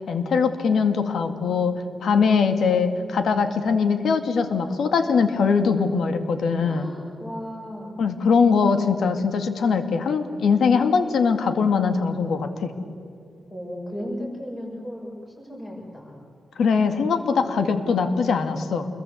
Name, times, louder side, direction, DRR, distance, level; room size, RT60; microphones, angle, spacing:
voice 1, 0.1-6.9 8.0-12.7 16.6-18.9, left 5 dB, 80° left, 8 dB, 2.2 m, -21 dB
voice 2, 6.6-7.9 13.5-15.1 15.4-16.1 17.4-17.7, equal, 15° left, -3 dB, 6.8 m, -35 dB
28.0 x 22.0 x 8.2 m, 2.5 s
wide cardioid pair, 160°, 0 cm